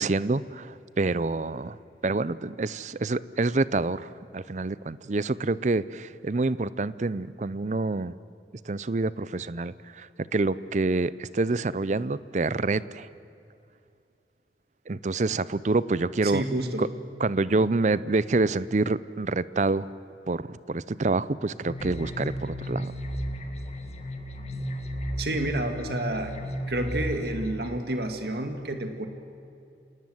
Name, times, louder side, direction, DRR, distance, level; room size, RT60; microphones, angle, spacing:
voice 1, 0.0-1.8 2.0-8.1 8.7-13.1 14.9-16.4 16.8-16.9 17.2-19.9 20.3-22.9, right 3 dB, 40° right, 18 dB, 0.5 m, -27 dB
voice 2, 16.2-16.8 25.2-26.3 26.7-29.1, right 1 dB, 60° right, 6 dB, 2.0 m, -29 dB
sound 1, 21.7-27.7, equal, 35° left, 1.8 m, -34 dB
27.0 x 19.0 x 7.9 m, 2.6 s
head